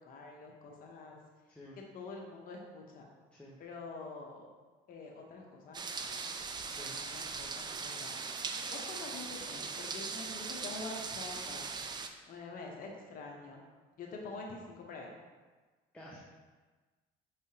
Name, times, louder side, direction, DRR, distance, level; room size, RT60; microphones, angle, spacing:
voice 1, 0.0-1.2 1.9-3.1 3.6-4.5 4.9-6.3 6.8-11.7 12.3-13.6 14.0-15.1, left 3 dB, 55° left, 0 dB, 0.9 m, -46 dB
sound 1, 5.7-12.1, right 4 dB, 25° right, 0.3 m, -40 dB
voice 2, 6.7-7.0 15.9-16.2, left 1 dB, 5° left, -5 dB, 0.6 m, -51 dB
5.6 x 3.4 x 2.8 m, 1.3 s
cardioid pair, 110°, 17 cm